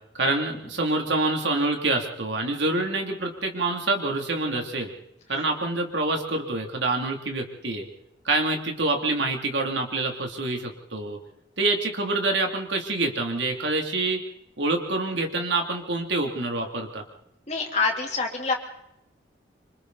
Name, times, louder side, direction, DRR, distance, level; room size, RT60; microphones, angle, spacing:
voice 1, 0.2-4.9 5.3-7.8 8.2-11.2 11.6-14.2 14.6-17.0, right 2 dB, 75° right, 3 dB, 3.1 m, -26 dB
voice 2, 17.5-18.5, left 4 dB, 35° left, 0 dB, 3.5 m, -26 dB
26.5 x 26.0 x 4.2 m, 0.79 s
head